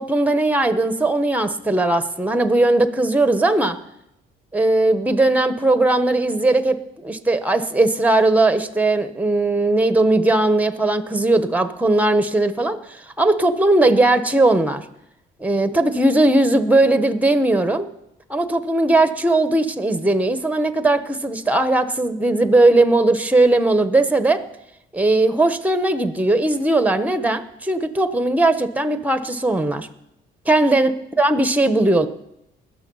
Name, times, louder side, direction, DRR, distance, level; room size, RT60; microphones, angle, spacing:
voice 1, 0.0-3.8 4.5-12.8 13.2-14.8 15.4-17.9 18.3-24.4 24.9-29.9 30.5-30.9 31.2-32.1, right 2 dB, 5° right, 11 dB, 1.0 m, -18 dB
20.5 x 6.9 x 5.5 m, 0.83 s
cardioid pair, 90°, 20 cm